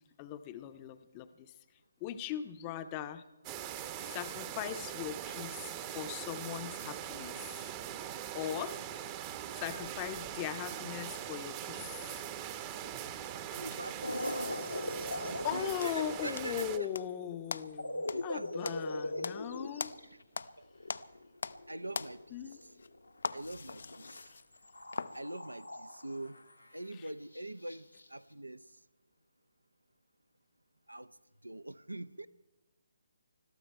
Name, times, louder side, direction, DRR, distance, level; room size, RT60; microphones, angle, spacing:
voice 1, 0.2-1.5 2.0-3.2 4.0-7.5 8.3-8.8 9.5-12.1 15.4-19.9 22.3-22.6 26.9-27.1, left 11 dB, 25° left, 11 dB, 0.7 m, -39 dB
sound 1, 3.4-16.8, right 10 dB, 20° right, 0.8 m, -42 dB
voice 2, 13.5-14.4 15.3-16.9 18.0-19.3 20.6-20.7 21.7-22.2 23.3-24.2 25.1-26.4 26.7-28.6 30.9-31.2 31.4-32.3, right 1 dB, 85° right, 14 dB, 0.6 m, -43 dB
sound 2, 14.0-23.1 23.4-24.3 24.5-26.7 27.3-27.4 27.7-28.1, left 1 dB, 85° left, 1.4 m, -41 dB
sound 3, 15.8-17.1 17.5-20.6 20.9-21.7 21.9-25.2, left 4 dB, 60° left, 0.5 m, -41 dB
21.0 x 13.5 x 4.5 m, 1.2 s
figure-of-eight pair, 140°, 0 cm